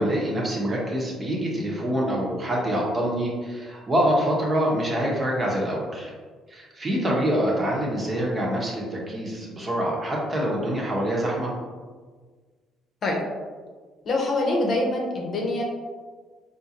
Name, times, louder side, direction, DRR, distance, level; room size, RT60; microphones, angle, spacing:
voice 1, 0.0-6.1 6.5-11.5, equal, 30° right, -3 dB, 1.0 m, -25 dB
voice 2, 14.0-15.6, left 2 dB, 55° left, -1 dB, 0.8 m, -24 dB
3.7 x 2.6 x 2.9 m, 1.5 s
supercardioid pair, 75°, 0 cm